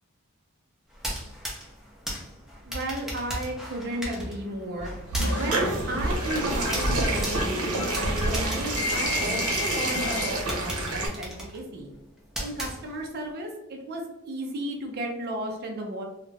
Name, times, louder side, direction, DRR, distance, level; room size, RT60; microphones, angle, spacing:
sound 1, 0.9-9.7 10.1-10.2 10.5-13.3, equal, ahead, 0.5 m, -37 dB
voice 1, 2.7-4.9 5.3-11.9 12.4-16.0, right 1 dB, 50° right, 1 dB, 0.4 m, -34 dB
sound 2, 4.8-11.1, right 2 dB, 85° right, 0.7 m, -28 dB
sound 3, 5.2-10.6, left 3 dB, 60° left, 0.5 m, -34 dB
2.3 x 2.1 x 3.1 m, 0.89 s
head